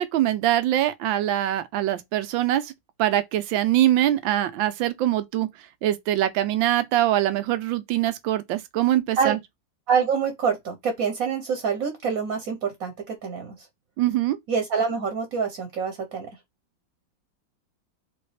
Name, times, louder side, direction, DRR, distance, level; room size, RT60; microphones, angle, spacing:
voice 1, 0.0-2.7 3.0-5.5 5.8-9.4 14.0-14.4, right 13 dB, 90° right, 1.4 m, -23 dB
voice 2, 9.9-13.5 14.5-16.3, right 6 dB, 55° right, 1.2 m, -26 dB
4.0 x 3.4 x 3.2 m
omnidirectional pair, 2.0 m